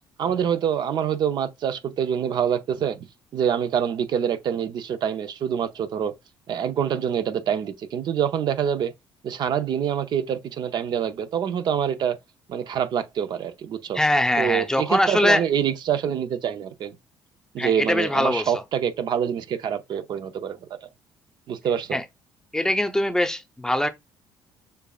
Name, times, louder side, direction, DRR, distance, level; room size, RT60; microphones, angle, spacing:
voice 1, 0.2-6.1 6.5-8.9 9.2-12.2 12.5-14.0 14.4-17.0 17.5-20.9 21.5-22.0, right 8 dB, 60° right, 0.6 m, -26 dB
voice 2, 13.9-15.4 17.6-18.5 21.9-22.0 22.5-23.9, left 1 dB, 5° left, 0.7 m, -22 dB
6.7 x 2.5 x 2.4 m
supercardioid pair, 70°, 8 cm